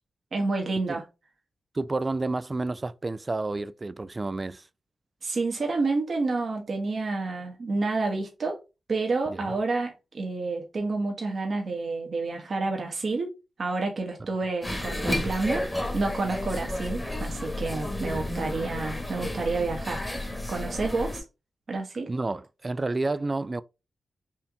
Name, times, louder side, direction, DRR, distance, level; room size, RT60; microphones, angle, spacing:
voice 1, 0.3-1.0 5.2-8.6 8.9-13.3 13.6-15.7 15.9-21.2 21.7-22.1, right 3 dB, 60° right, 1.1 m, -29 dB
voice 2, 1.7-4.7 9.3-9.5 22.1-23.6, right 2 dB, 35° right, 0.3 m, -30 dB
sound 1, 14.6-21.2, left 1 dB, 20° left, 1.2 m, -32 dB
4.4 x 2.7 x 3.4 m
cardioid pair, 50°, 0 cm